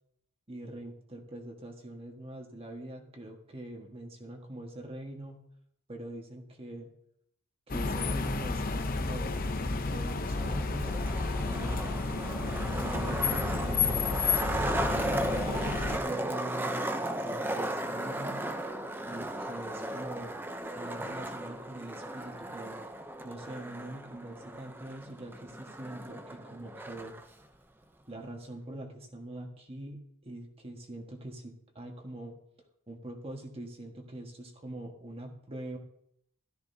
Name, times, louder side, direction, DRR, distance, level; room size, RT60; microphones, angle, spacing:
voice 1, 0.5-5.4 5.9-6.9 7.7-11.9 12.8-14.2 15.0-16.9 17.2-18.5 19.1-20.4 20.7-22.8 23.2-27.2 28.1-32.4 32.9-35.8, right 1 dB, 25° right, 2 dB, 1.5 m, -43 dB
sound 1, 7.7-16.0, left 4 dB, 40° left, 0.7 m, -31 dB
Skateboard, 10.2-27.2, right 1 dB, 10° right, 0.6 m, -36 dB
13.5 x 13.0 x 2.8 m, 0.73 s
head